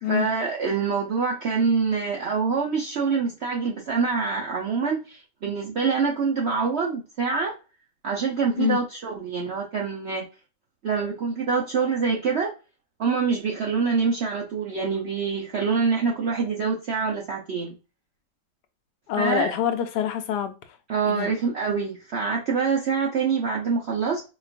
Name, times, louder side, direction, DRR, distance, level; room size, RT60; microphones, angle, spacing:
voice 1, 0.0-7.5 8.0-10.2 10.8-12.5 13.0-17.7 19.2-19.6 20.9-24.2, right 5 dB, 65° right, 0.6 m, -25 dB
voice 2, 19.1-20.6 21.0-21.3, left 10 dB, 80° left, 1.2 m, -25 dB
4.3 x 2.4 x 2.4 m
omnidirectional pair, 1.8 m